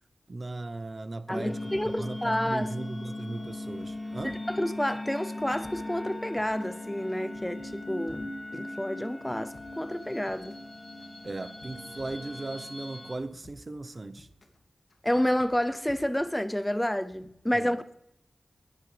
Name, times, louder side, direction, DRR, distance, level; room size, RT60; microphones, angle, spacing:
voice 1, 0.3-4.4 11.2-14.3 17.5-17.8, right 2 dB, 40° right, 0.9 m, -37 dB
sound 1, 1.3-13.2, left 2 dB, 25° left, 3.1 m, -39 dB
voice 2, 1.3-2.7 4.2-10.5 15.0-17.8, left 1 dB, 10° left, 0.6 m, -30 dB
sound 2, 1.7-2.9 3.2-4.8 5.1-6.8 7.1-8.7 9.0-10.7 11.0-12.6 12.9-14.6 14.9-16.5 16.8-17.3, left 2 dB, 55° left, 2.5 m, -55 dB
21.0 x 16.5 x 3.4 m
wide cardioid pair, 90°, 0 cm